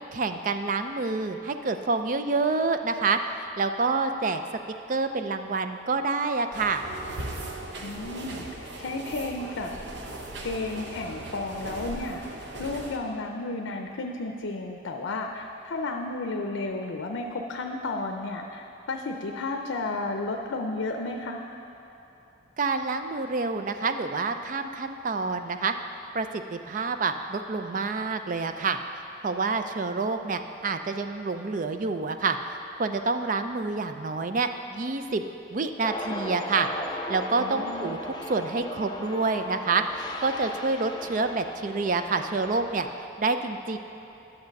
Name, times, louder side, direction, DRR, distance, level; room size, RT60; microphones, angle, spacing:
voice 1, 0.1-4.4 4.9-6.8 22.6-25.7 26.1-28.8 29.2-35.2 35.5-43.8, right 3 dB, 45° right, 8 dB, 0.4 m, -28 dB
sound 1, 6.5-13.0, right 1 dB, 65° right, 0.8 m, -39 dB
voice 2, 7.8-9.7 10.4-21.4 37.4-37.9, left 2 dB, 85° left, 3 dB, 0.6 m, -33 dB
sound 2, 35.8-42.9, left 1 dB, 20° left, 0.5 m, -37 dB
10.5 x 6.6 x 5.2 m, 2.9 s
head